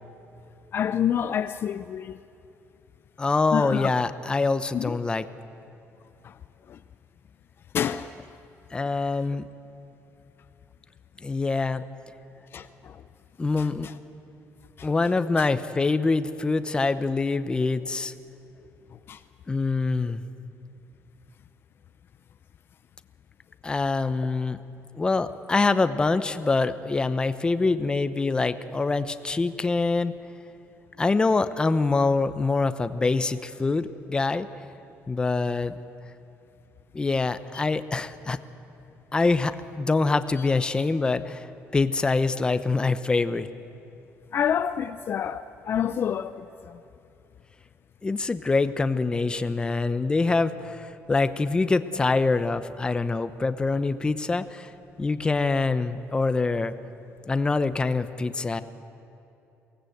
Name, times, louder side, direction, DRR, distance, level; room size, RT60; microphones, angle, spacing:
voice 1, 0.7-2.2 3.5-3.9 4.7-4.9 6.2-6.3 6.7-6.8 7.7-8.1 12.5-13.0 13.6-13.7 14.8-14.9 15.4-15.5 19.1-19.2 37.5-37.6 44.3-46.8, left 9 dB, 45° left, 0.5 m, -28 dB
voice 2, 3.2-5.2 8.7-9.5 11.2-11.8 13.4-13.9 14.8-18.1 19.5-20.2 23.6-24.6 25.0-30.2 31.0-34.5 35.1-35.7 36.9-38.4 39.1-41.5 41.7-43.5 48.0-54.7 55.0-56.7 57.3-58.6, left 3 dB, 15° left, 0.8 m, -25 dB
23.5 x 18.0 x 8.0 m
cardioid pair, 140°, 5 cm